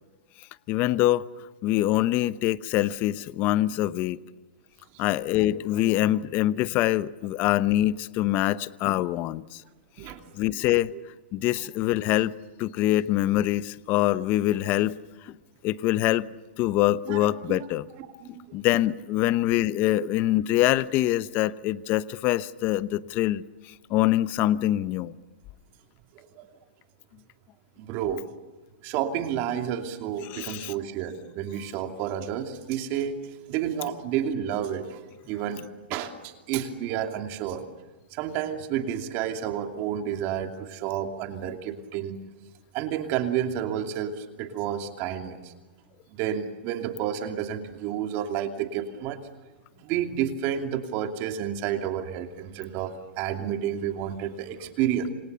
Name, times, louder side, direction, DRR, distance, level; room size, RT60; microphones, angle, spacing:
voice 1, 0.7-1.2 1.6-4.2 5.0-9.6 10.3-10.9 11.3-12.3 12.6-15.0 15.2-15.3 15.6-16.3 16.6-17.9 18.5-25.1 30.2-30.7, left 15 dB, 35° left, 0.9 m, -24 dB
voice 2, 17.1-17.7 18.0-18.3 20.0-20.1 26.1-26.5 27.8-28.2 28.8-35.0 35.3-35.6 35.9-37.6 38.1-42.1 42.7-45.5 46.1-49.2 49.8-55.1, right 9 dB, 40° right, 2.8 m, -30 dB
28.5 x 27.0 x 6.9 m
hypercardioid pair, 140°, 6 cm